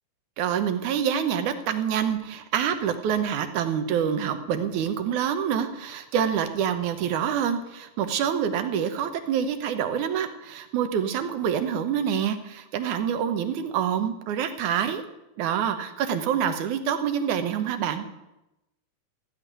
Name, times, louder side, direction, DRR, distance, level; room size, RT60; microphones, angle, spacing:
voice 1, 0.4-15.0 15.4-18.1, right 8 dB, 70° right, 9 dB, 2.3 m, -26 dB
14.5 x 6.4 x 10.0 m, 0.93 s
omnidirectional pair, 3.8 m